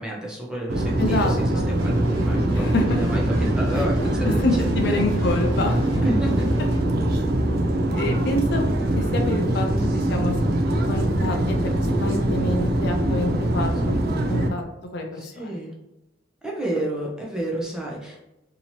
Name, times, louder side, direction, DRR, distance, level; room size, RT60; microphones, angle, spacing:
voice 1, 0.0-4.9 6.0-6.5 9.6-9.9 15.2-15.7 16.4-18.2, right 1 dB, 5° right, -3 dB, 0.6 m, -30 dB
sound 1, 0.7-14.5, right 1 dB, 50° right, 0.4 m, -23 dB
voice 2, 1.0-1.8 2.5-3.0 3.8-3.9 4.3-5.9 7.9-8.7 8.9-9.7 10.1-10.3 10.9-13.7 14.3-14.6 14.9-15.6, left 2 dB, 55° left, 3 dB, 0.5 m, -27 dB
sound 2, 1.7-6.8, equal, 70° right, 1.1 m, -37 dB
2.9 x 2.8 x 4.2 m, 0.95 s
head